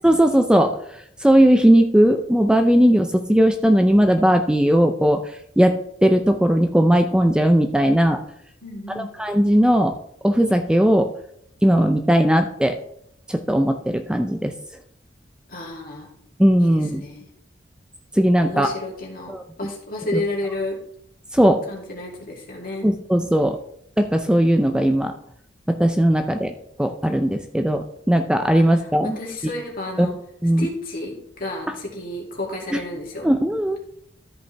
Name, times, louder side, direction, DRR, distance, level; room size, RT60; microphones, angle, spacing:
voice 1, 0.0-5.7 6.0-8.2 9.0-9.9 10.2-11.1 11.6-12.8 13.3-14.5 16.4-17.0 18.1-18.7 19.3-19.4 20.1-20.2 21.3-21.6 22.8-23.6 24.0-25.1 25.7-26.5 26.8-29.2 30.0-30.1 30.4-30.7 32.7-32.8 33.2-33.8, equal, 5° right, 6 dB, 0.4 m, -18 dB
voice 2, 8.6-9.1 15.5-16.1 16.6-17.3 18.4-19.3 19.6-20.8 21.7-22.9 28.5-28.9 29.2-30.1 30.6-33.3, left 2 dB, 50° left, -2 dB, 2.7 m, -31 dB
13.5 x 5.3 x 3.4 m, 0.70 s
head